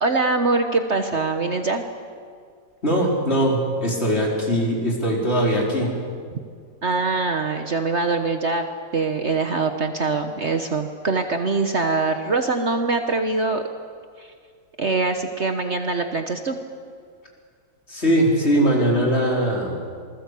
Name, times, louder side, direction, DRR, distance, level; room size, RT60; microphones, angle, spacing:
voice 1, 0.0-1.8 6.8-8.6 8.9-13.6 14.2-14.3 14.8-16.5, right 3 dB, 45° right, 6 dB, 1.4 m, -23 dB
voice 2, 2.8-5.9 17.9-19.8, equal, 40° left, -2 dB, 5.0 m, -21 dB
27.0 x 20.0 x 8.4 m, 2.1 s
omnidirectional pair, 1.7 m